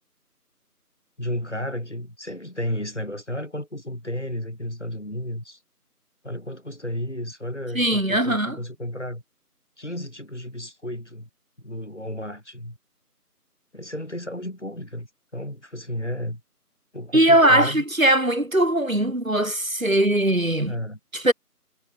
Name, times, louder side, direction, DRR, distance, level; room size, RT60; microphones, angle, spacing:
voice 1, 1.2-5.6 6.2-9.2 9.8-11.3 11.6-12.8 13.7-15.1 15.3-16.4 16.9-17.8 20.7-21.0, left 1 dB, 45° left, 7.3 m, -32 dB
voice 2, 7.7-8.6 17.1-20.7 21.1-21.3, right 1 dB, 55° right, 2.6 m, -20 dB
figure-of-eight pair, 180°, 47 cm